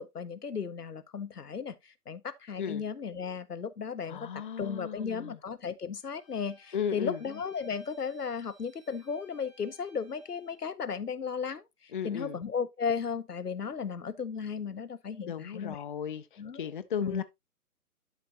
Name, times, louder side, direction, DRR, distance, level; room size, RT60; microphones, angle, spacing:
voice 1, 0.0-1.8 2.1-11.6 12.0-15.8 16.4-16.6 17.0-17.2, left 6 dB, 90° left, 0.9 m, -35 dB
voice 2, 4.1-5.4 6.7-7.2 11.9-12.4 15.2-17.2, left 7 dB, 35° left, 0.6 m, -35 dB
Bowed string instrument, 6.0-10.6, equal, ahead, 1.3 m, -61 dB
11.5 x 5.0 x 2.8 m
figure-of-eight pair, 135°, 45 cm